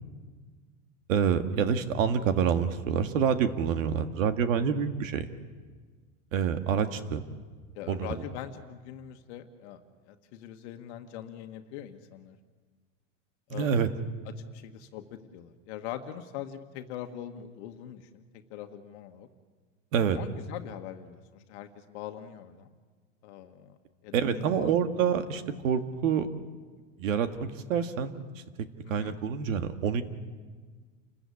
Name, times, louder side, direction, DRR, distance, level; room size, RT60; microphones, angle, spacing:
voice 1, 1.1-5.2 6.3-7.2 7.9-8.2 13.5-13.9 19.9-20.2 24.1-26.3 27.0-27.3 27.7-28.1 28.6-30.0, right 7 dB, 80° right, 9 dB, 1.8 m, -27 dB
voice 2, 7.7-9.8 10.1-12.4 13.5-13.9 14.5-18.2 18.5-19.3 20.1-22.7 23.2-23.8 24.0-24.7 25.0-25.3 28.8-29.2, left 11 dB, 55° left, 6 dB, 1.5 m, -42 dB
28.5 x 14.5 x 8.5 m, 1.5 s
supercardioid pair, 140°, 39 cm